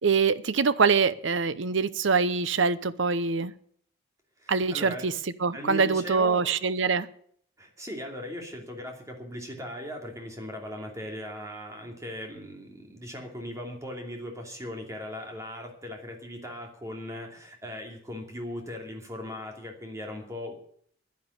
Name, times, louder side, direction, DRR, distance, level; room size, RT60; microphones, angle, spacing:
voice 1, 0.0-3.5 4.5-5.1 5.4-7.1, right 5 dB, 70° right, 0.8 m, -24 dB
voice 2, 4.4-5.1 5.5-6.5 7.6-20.5, left 1 dB, 15° right, 2.8 m, -38 dB
10.5 x 10.0 x 9.9 m
head